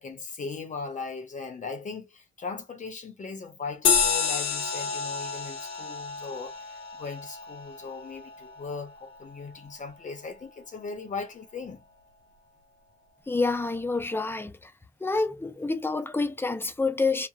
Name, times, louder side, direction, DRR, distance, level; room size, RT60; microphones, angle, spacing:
voice 1, 0.0-6.7 7.0-11.8, left 4 dB, 40° left, 0.8 m, -38 dB
sound 1, 3.8-8.7, left 5 dB, 80° left, 1.2 m, -29 dB
voice 2, 13.3-14.7 15.0-17.3, left 3 dB, 10° left, 0.5 m, -28 dB
3.2 x 2.2 x 2.3 m
cardioid pair, 90°, 20 cm